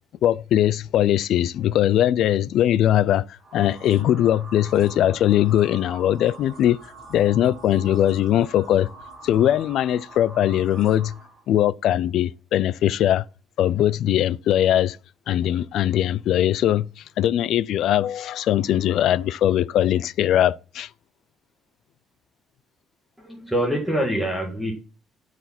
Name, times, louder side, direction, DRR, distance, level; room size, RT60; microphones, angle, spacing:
voice 1, 0.2-6.8 7.1-8.9 9.2-11.1 11.5-13.2 13.6-15.0 15.3-20.9, left 11 dB, 60° left, 0.4 m, -20 dB
sound 1, 3.4-11.4, right 2 dB, 20° right, 6.9 m, -44 dB
voice 2, 23.2-24.7, equal, ahead, 1.8 m, -25 dB
12.5 x 5.0 x 5.9 m
cardioid pair, 170°, 0 cm